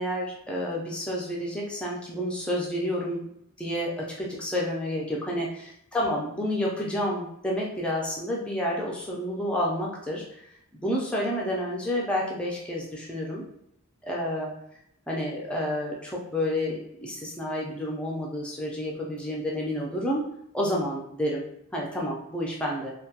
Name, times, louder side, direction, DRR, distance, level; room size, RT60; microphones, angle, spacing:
voice 1, 0.0-3.3 3.6-10.4 10.7-13.4 14.0-14.5 15.1-20.2 20.5-21.5 21.7-22.9, left 1 dB, 5° left, -3 dB, 0.4 m, -30 dB
2.2 x 2.2 x 2.7 m, 0.75 s
head